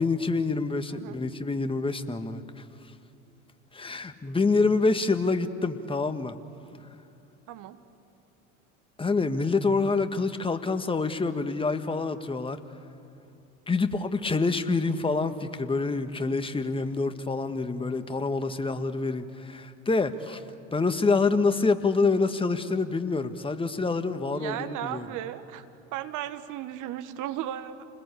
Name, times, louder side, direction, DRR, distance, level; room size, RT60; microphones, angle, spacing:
voice 1, 0.0-2.6 3.7-6.4 9.0-12.6 13.7-20.4 20.7-25.1, left 3 dB, 15° left, 9 dB, 1.6 m, -26 dB
voice 2, 24.3-25.6 25.9-27.8, right 12 dB, 50° right, 11 dB, 1.5 m, -35 dB
29.0 x 20.5 x 8.5 m, 2.6 s
hypercardioid pair, 85°, 39 cm